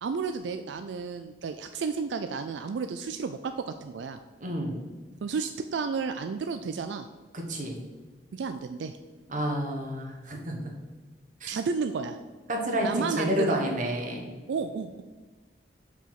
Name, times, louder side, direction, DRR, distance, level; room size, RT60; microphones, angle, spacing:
voice 1, 0.0-4.2 5.2-7.1 8.3-9.0 11.5-12.2 12.8-13.6 14.5-15.0, right 5 dB, 85° right, 8 dB, 0.4 m, -32 dB
voice 2, 4.4-4.8 7.3-7.8 9.3-10.8 11.4-11.5 12.5-14.3, equal, 45° right, 1 dB, 1.4 m, -30 dB
5.6 x 4.9 x 5.8 m, 1.3 s
head